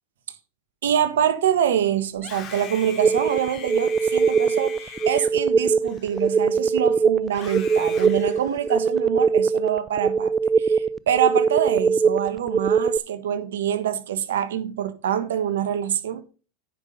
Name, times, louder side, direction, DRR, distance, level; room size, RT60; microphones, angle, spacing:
voice 1, 0.8-10.3 10.6-16.2, right 9 dB, 80° right, 1.5 m, -25 dB
Screaming, 2.1-6.6 7.3-9.0, left 7 dB, 40° left, 2.6 m, -41 dB
sound 1, 3.0-13.0, right 5 dB, 20° right, 0.5 m, -21 dB
9.9 x 6.0 x 5.3 m
hypercardioid pair, 100°, 0 cm